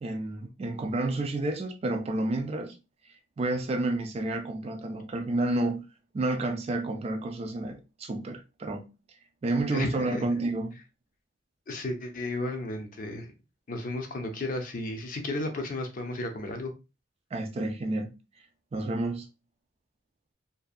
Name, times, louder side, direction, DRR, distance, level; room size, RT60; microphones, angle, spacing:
voice 1, 0.0-2.8 3.4-5.8 6.1-8.9 9.4-10.8 17.3-18.1 18.7-19.3, right 2 dB, 30° right, 0.3 m, -30 dB
voice 2, 9.7-10.3 11.7-13.3 13.7-16.7, left 2 dB, 45° left, 0.5 m, -33 dB
2.6 x 2.2 x 2.3 m
head